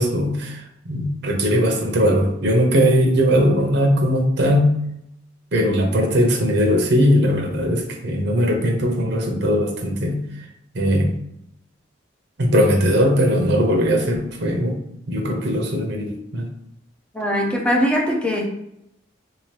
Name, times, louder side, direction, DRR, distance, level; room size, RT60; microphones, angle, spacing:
voice 1, 0.0-4.7 5.5-10.2 10.7-11.2 12.4-14.8 15.1-16.5, equal, 60° right, 2 dB, 0.7 m, -19 dB
voice 2, 17.1-18.5, equal, 5° left, -2 dB, 0.6 m, -21 dB
3.5 x 2.8 x 3.3 m, 0.79 s
head